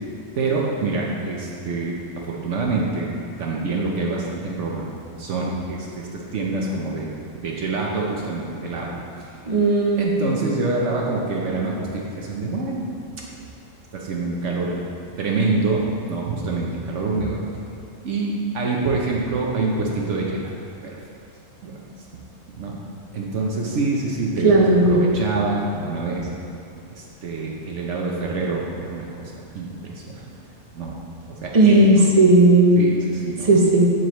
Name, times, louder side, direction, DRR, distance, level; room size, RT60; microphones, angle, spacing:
voice 1, 0.4-3.1 3.4-4.9 5.2-9.3 10.0-12.9 13.9-14.8 15.2-17.4 18.0-20.4 20.8-21.0 21.6-21.8 22.6-22.8 23.1-24.5 24.8-26.3 26.9-29.2 29.5-30.2 30.7-30.9 31.4-31.7 32.8-33.5, right 3 dB, 70° right, -2 dB, 1.1 m, -26 dB
voice 2, 9.5-10.3 24.4-25.0 31.5-32.8 33.4-33.9, right 2 dB, 30° right, -1 dB, 0.8 m, -15 dB
7.9 x 7.4 x 3.1 m, 2.6 s
omnidirectional pair, 1.4 m